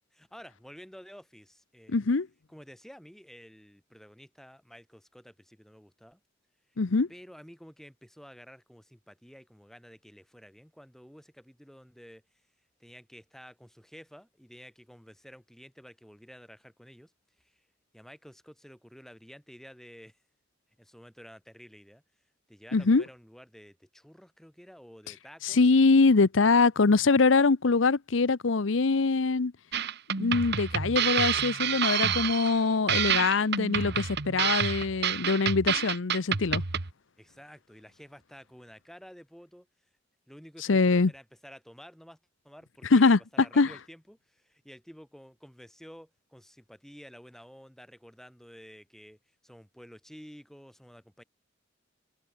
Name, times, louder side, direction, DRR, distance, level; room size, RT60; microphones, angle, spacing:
voice 1, 0.1-2.0 2.5-6.2 6.7-6.8 7.1-12.4 12.8-17.1 17.4-17.7 17.9-20.2 20.8-22.0 22.5-25.6 37.2-39.7 40.3-42.2 42.4-49.2 49.4-51.2, equal, ahead, 4.8 m, -51 dB
voice 2, 1.9-2.3 6.8-7.1 22.7-23.0 25.4-29.5 30.2-36.6 40.7-41.1 42.9-43.2 43.6-43.7, left 4 dB, 70° left, 0.7 m, -23 dB
sound 1, 29.7-36.9, right 8 dB, 55° right, 1.4 m, -28 dB
open air
head